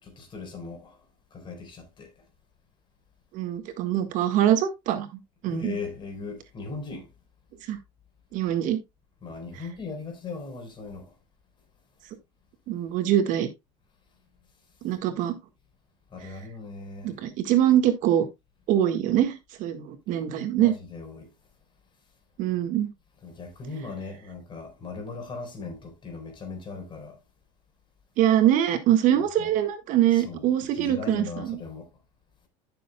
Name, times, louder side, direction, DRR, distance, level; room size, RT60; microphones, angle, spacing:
voice 1, 0.0-1.0 1.3-2.1 5.5-7.1 9.2-11.1 16.1-17.1 20.5-21.3 23.2-27.2 29.4-29.5 30.1-30.4 30.8-31.9, left 4 dB, 30° left, 4.1 m, -38 dB
voice 2, 3.3-5.1 5.4-5.8 7.7-7.8 8.3-8.8 9.5-9.6 12.7-13.5 14.8-15.4 16.2-16.4 17.0-18.3 18.7-20.7 22.4-22.9 28.2-31.6, right 11 dB, 60° right, 1.6 m, -23 dB
13.5 x 7.0 x 2.3 m
supercardioid pair, 120°, 15 cm